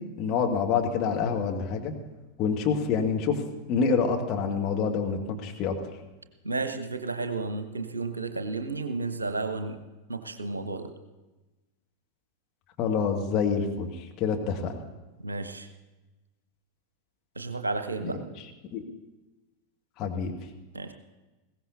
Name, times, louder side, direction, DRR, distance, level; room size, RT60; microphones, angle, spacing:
voice 1, 0.2-1.9 2.4-5.7 12.8-14.8 18.0-18.1 18.7-18.8 20.0-20.3, left 6 dB, 35° left, 1 dB, 1.7 m, -27 dB
voice 2, 6.4-9.8 10.1-10.9 15.2-15.7 17.4-18.2 20.7-20.9, right 3 dB, 80° right, 8 dB, 1.0 m, -32 dB
20.5 x 16.5 x 2.7 m, 1.1 s
figure-of-eight pair, 90°, 0 cm